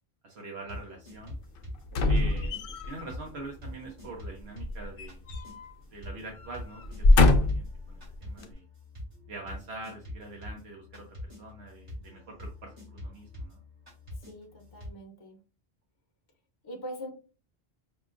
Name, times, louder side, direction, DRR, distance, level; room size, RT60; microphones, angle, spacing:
voice 1, 0.2-1.3 2.0-2.5 2.9-5.2 5.9-7.3 7.5-8.6 9.3-13.6, right 2 dB, 80° right, -1 dB, 1.1 m, -44 dB
sound 1, 0.6-2.6 3.1-14.9, left 1 dB, 50° right, 2.4 m, -45 dB
sound 2, 1.9-3.0 4.6-5.7 6.0-6.2 6.8-7.8 8.4-8.5, left 2 dB, 65° left, 0.7 m, -23 dB
voice 2, 1.9-2.4 14.2-15.4 16.6-17.1, equal, 25° left, 2 dB, 0.6 m, -43 dB
5.4 x 2.3 x 2.5 m, 0.34 s
omnidirectional pair, 1.1 m